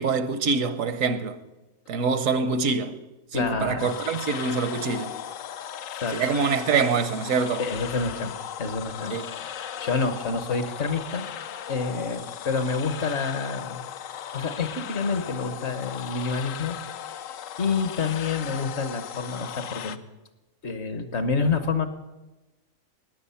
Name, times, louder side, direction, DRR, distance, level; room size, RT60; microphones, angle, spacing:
voice 1, 0.0-1.4 1.9-3.0 3.3-5.2 6.1-7.6 9.1-9.3, right 5 dB, 75° right, 1.2 m, -25 dB
voice 2, 3.3-3.9 5.9-6.2 7.6-8.3 8.6-11.3 11.7-13.8 14.3-20.0 20.6-21.9, left 4 dB, 55° left, 1.3 m, -28 dB
sound 1, 3.8-20.0, left 9 dB, 75° left, 1.0 m, -37 dB
17.5 x 10.0 x 5.6 m
omnidirectional pair, 1.4 m